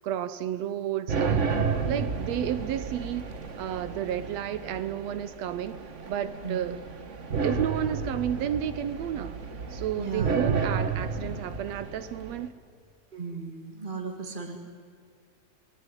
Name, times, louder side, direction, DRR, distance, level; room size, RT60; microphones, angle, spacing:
voice 1, 0.0-5.8 6.1-6.8 7.4-9.4 9.7-12.5, right 10 dB, 70° right, 13 dB, 1.8 m, -32 dB
sound 1, 1.1-12.5, right 5 dB, 40° right, 1.0 m, -32 dB
voice 2, 10.0-10.5 13.1-14.6, right 5 dB, 20° right, 2 dB, 1.6 m, -35 dB
28.5 x 21.0 x 9.8 m, 2.2 s
omnidirectional pair, 3.4 m